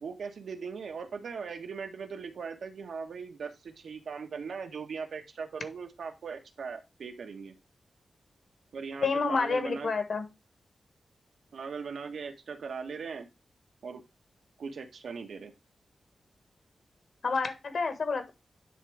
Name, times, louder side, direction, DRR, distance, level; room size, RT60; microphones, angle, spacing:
voice 1, 0.0-7.5 8.7-9.9 11.5-13.3 13.8-14.0 14.6-15.5, right 5 dB, 80° right, 5 dB, 1.3 m, -39 dB
voice 2, 9.0-10.2 17.2-18.3, left 4 dB, 60° left, 7 dB, 1.6 m, -29 dB
10.0 x 3.8 x 4.7 m, 0.24 s
wide cardioid pair, 155°, 0 cm